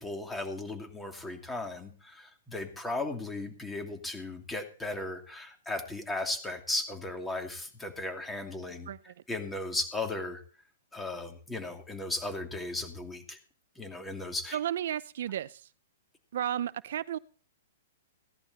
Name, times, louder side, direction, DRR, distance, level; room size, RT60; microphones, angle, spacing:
voice 1, 0.0-8.9 9.3-10.4 10.9-13.4 13.8-14.6, left 2 dB, 10° left, 4 dB, 2.7 m, -36 dB
voice 2, 14.5-15.6 16.3-17.2, right 11 dB, 65° right, 18 dB, 0.5 m, -33 dB
16.5 x 11.0 x 4.2 m, 0.41 s
hypercardioid pair, 140°, 0 cm